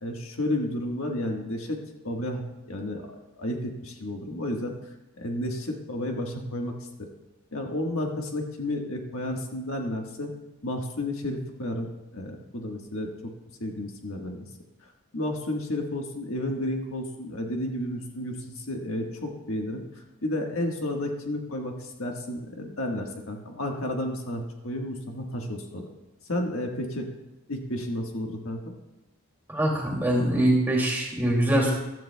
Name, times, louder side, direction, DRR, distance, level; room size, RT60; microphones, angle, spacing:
voice 1, 0.0-1.8 2.0-2.4 2.7-3.1 3.4-4.7 5.2-7.1 7.5-10.3 10.6-13.3 13.6-14.5 15.1-19.8 20.2-25.9 26.3-27.1 27.5-28.7, left 1 dB, 75° left, 2 dB, 1.5 m, -32 dB
voice 2, 29.5-31.7, right 1 dB, 10° right, -2 dB, 2.3 m, -23 dB
15.5 x 12.5 x 2.2 m, 1.0 s
head